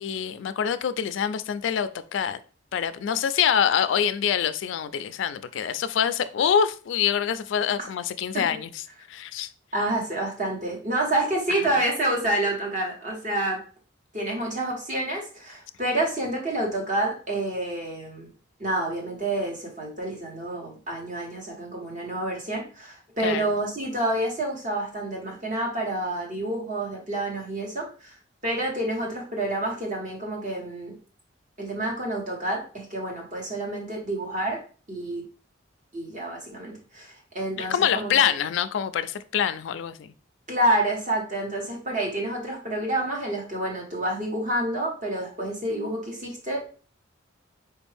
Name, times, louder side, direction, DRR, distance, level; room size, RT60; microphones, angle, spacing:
voice 1, 0.0-2.4 2.7-8.7 9.1-9.5 23.2-23.5 37.6-40.1, left 8 dB, 70° left, 0.3 m, -25 dB
voice 2, 9.7-13.6 14.1-18.3 18.6-28.2 28.4-30.9 31.6-34.6 34.9-35.2 35.9-38.3 40.5-46.6, right 1 dB, 40° right, 1.3 m, -28 dB
4.5 x 2.6 x 3.4 m
head